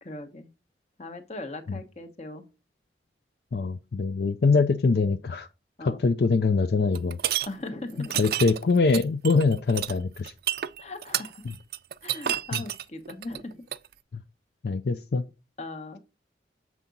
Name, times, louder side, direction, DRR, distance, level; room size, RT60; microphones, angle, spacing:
voice 1, 0.0-0.5 1.0-2.4 5.8-6.0 7.5-8.2 10.8-11.4 12.0-13.6 15.6-16.0, left 2 dB, 40° left, 0.9 m, -39 dB
voice 2, 3.5-5.5 5.8-7.2 8.2-10.3 12.5-12.6 14.6-15.2, left 4 dB, 65° left, 0.4 m, -23 dB
sound 1, 6.9-7.5 8.0-13.9, right 11 dB, 55° right, 0.4 m, -30 dB
7.3 x 4.7 x 3.9 m
head